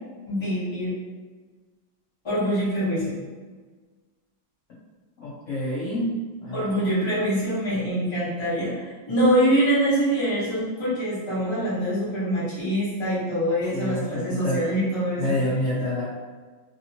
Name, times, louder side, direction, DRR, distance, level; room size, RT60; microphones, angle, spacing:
voice 1, 0.3-0.9 2.2-3.2 6.5-15.4, equal, 20° left, -10 dB, 0.8 m, -24 dB
voice 2, 5.2-6.1 6.4-6.8 13.7-14.6 15.2-16.0, left 1 dB, 90° left, -7 dB, 0.6 m, -27 dB
3.3 x 2.8 x 2.8 m, 1.4 s
omnidirectional pair, 2.2 m